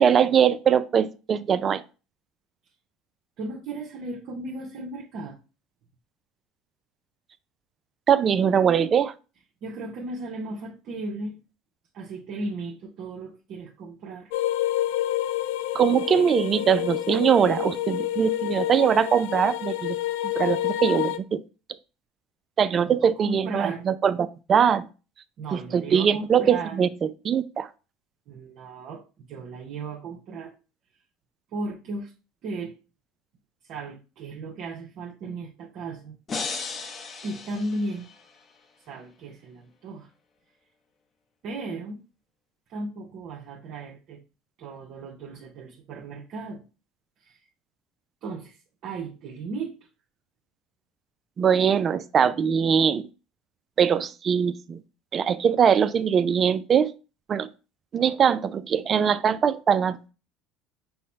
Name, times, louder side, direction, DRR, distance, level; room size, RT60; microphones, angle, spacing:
voice 1, 0.0-1.8 8.1-9.1 15.7-20.0 20.4-21.4 22.6-24.9 25.5-27.7 51.4-53.1 53.8-54.8 55.1-56.9 57.3-57.5 57.9-60.1, right 7 dB, 35° right, 14 dB, 0.3 m, -22 dB
voice 2, 3.4-5.4 9.6-11.4 11.9-14.3 16.1-16.2 22.8-23.8 25.4-26.9 28.3-30.5 31.5-32.1 32.4-32.8 33.7-36.2 36.5-36.7 37.2-38.1 38.9-40.1 41.4-42.0 42.7-44.2 44.6-46.6 47.2-47.4 48.2-49.8, right 2 dB, 55° right, -2 dB, 0.8 m, -35 dB
sound 1, 14.3-21.2, left 13 dB, 80° left, 0.3 m, -28 dB
sound 2, 36.3-38.4, left 4 dB, 30° left, 0.7 m, -35 dB
5.6 x 2.1 x 4.2 m, 0.32 s
supercardioid pair, 115°, 0 cm